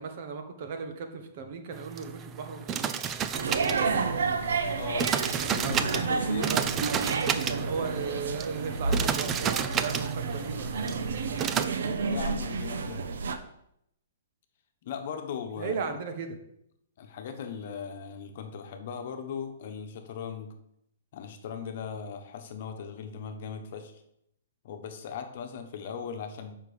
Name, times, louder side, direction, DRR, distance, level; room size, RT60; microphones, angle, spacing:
voice 1, 0.0-2.8 3.4-4.0 5.4-5.9 6.4-6.9 7.5-10.9 11.5-12.2 15.6-16.4, right 5 dB, 45° right, 6 dB, 1.3 m, -37 dB
sound 1, 1.7-11.7, right 8 dB, 20° right, 0.4 m, -32 dB
sound 2, 3.3-13.4, right 4 dB, 85° right, 0.8 m, -30 dB
voice 2, 4.7-5.1 5.5-6.5 7.0-7.1 12.0-13.1 14.8-15.8 17.0-20.5 21.1-24.0 24.6-26.5, left 7 dB, 50° left, 6 dB, 1.2 m, -38 dB
7.5 x 5.7 x 5.0 m, 0.76 s
hypercardioid pair, 165°, 0 cm